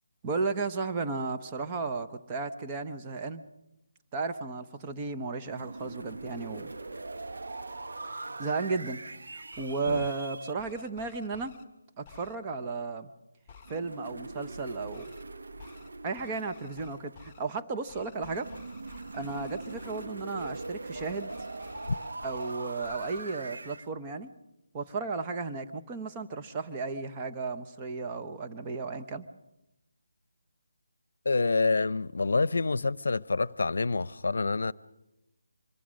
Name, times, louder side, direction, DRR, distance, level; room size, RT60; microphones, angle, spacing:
voice 1, 0.2-3.4 4.1-6.7 8.2-11.5 12.0-13.1 13.7-15.0 16.0-18.5 19.1-21.3 22.2-24.3 24.7-29.3, right 4 dB, 15° right, 0.9 m, -34 dB
sound 1, 5.5-10.5 13.6-17.4 18.1-23.9, right 2 dB, 75° right, 0.9 m, -42 dB
sound 2, 9.4-10.2 10.6-11.6 12.0-12.4 13.5-13.8 14.9-15.2 15.6-15.9 16.2-17.4 17.9-20.1 20.4-20.7 20.9-22.5 22.8-23.2, left 6 dB, 10° left, 1.9 m, -53 dB
voice 2, 31.2-34.7, left 3 dB, 70° left, 0.7 m, -27 dB
25.5 x 21.5 x 6.4 m
figure-of-eight pair, 170°, 0 cm